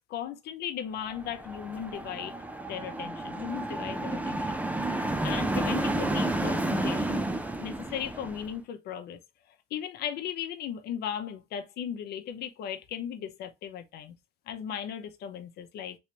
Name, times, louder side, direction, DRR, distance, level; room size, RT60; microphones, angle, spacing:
voice 1, 0.1-2.3 2.7-4.6 5.2-7.2 7.6-9.2 9.7-14.1 14.5-16.0, left 9 dB, 70° left, 0.8 m, -37 dB
sound 1, 1.1-8.5, right 1 dB, 10° right, 0.4 m, -31 dB
3.1 x 3.0 x 2.9 m
cardioid pair, 110°, 17 cm